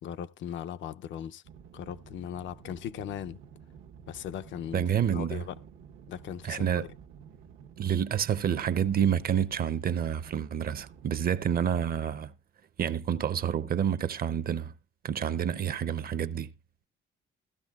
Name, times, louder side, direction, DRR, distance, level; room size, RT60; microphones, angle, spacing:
voice 1, 0.0-1.4 1.7-3.4 4.1-5.5 6.1-6.9, left 9 dB, 70° left, 0.5 m, -38 dB
sound 1, 1.4-12.0, right 7 dB, 90° right, 1.0 m, -51 dB
voice 2, 4.7-5.4 6.4-6.9 7.8-12.3 12.8-14.7 15.0-16.5, right 8 dB, 50° right, 0.6 m, -28 dB
15.5 x 11.5 x 2.3 m
cardioid pair, 90°, 20 cm